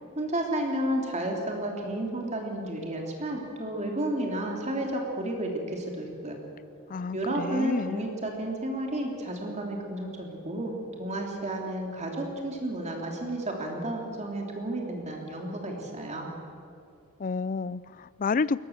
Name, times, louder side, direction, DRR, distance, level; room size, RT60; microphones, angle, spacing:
voice 1, 0.1-6.4 7.1-16.3, right 1 dB, 30° right, 1 dB, 3.0 m, -32 dB
voice 2, 6.9-8.0 17.2-18.6, left 4 dB, 35° left, 19 dB, 0.4 m, -30 dB
21.5 x 19.0 x 7.2 m, 2.5 s
head